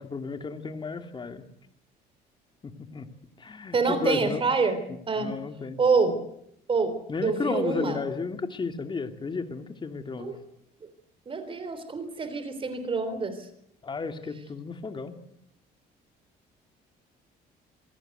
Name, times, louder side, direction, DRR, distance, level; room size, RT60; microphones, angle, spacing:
voice 1, 0.0-1.4 2.6-3.1 3.4-4.5 4.9-5.8 7.1-10.3 13.8-15.2, left 4 dB, 30° left, 6 dB, 2.7 m, -33 dB
voice 2, 3.7-5.4 5.8-6.2 6.7-8.0 10.2-10.4 11.3-13.4, right 4 dB, 30° right, 11 dB, 3.7 m, -26 dB
26.5 x 18.5 x 8.1 m, 0.73 s
cardioid pair, 110°, 17 cm